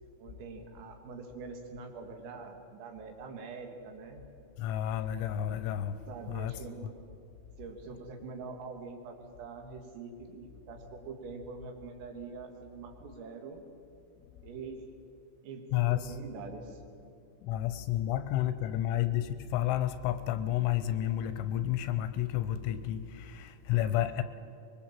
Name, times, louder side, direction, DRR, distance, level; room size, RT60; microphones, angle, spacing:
voice 1, 0.2-4.2 6.1-6.9 7.6-13.6 14.4-14.9 15.4-16.8, right 4 dB, 80° right, 4 dB, 4.8 m, -44 dB
voice 2, 4.6-6.0 6.3-6.5 15.7-16.2 17.4-24.2, left 12 dB, 80° left, 12 dB, 3.0 m, -31 dB
23.5 x 22.0 x 7.5 m, 2.6 s
omnidirectional pair, 5.9 m